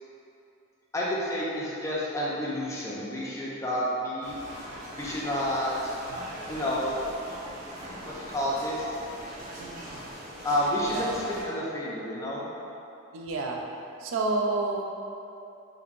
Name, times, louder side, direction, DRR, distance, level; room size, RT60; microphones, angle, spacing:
voice 1, 0.9-4.3 4.9-5.9 6.5-6.9 8.0-8.9 10.4-12.4, equal, 15° left, -6 dB, 0.5 m, -30 dB
sound 1, 4.2-11.4, right 1 dB, 40° right, 0.7 m, -41 dB
voice 2, 9.6-9.9 10.9-11.1 13.1-13.6 14.0-14.8, right 3 dB, 80° right, 1 dB, 0.4 m, -29 dB
4.3 x 2.6 x 2.5 m, 2.7 s
head